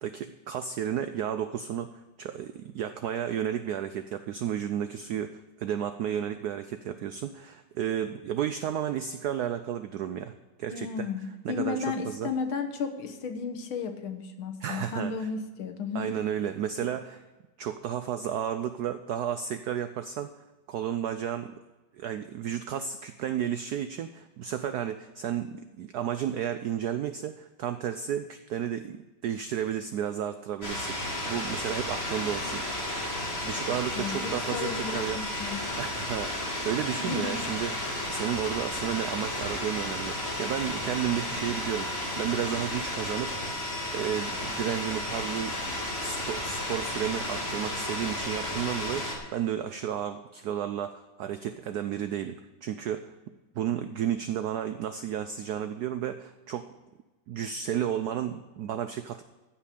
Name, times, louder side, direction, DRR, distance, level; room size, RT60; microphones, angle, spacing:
voice 1, 0.0-1.9 2.2-10.3 10.6-11.1 11.4-12.3 14.6-15.3 15.9-17.2 17.6-20.3 20.7-21.6 22.0-31.0 31.3-32.6 33.4-35.2 35.8-37.7 38.1-43.4 43.9-45.7 46.0-53.1 53.6-56.8 57.3-59.2, right 9 dB, 90° right, 10 dB, 0.8 m, -32 dB
voice 2, 10.7-16.2 34.0-35.6 37.0-37.5, left 5 dB, 70° left, 7 dB, 1.9 m, -34 dB
sound 1, 30.6-49.2, left 1 dB, 30° left, 2.5 m, -33 dB
15.0 x 5.9 x 8.4 m, 1.2 s
omnidirectional pair, 2.3 m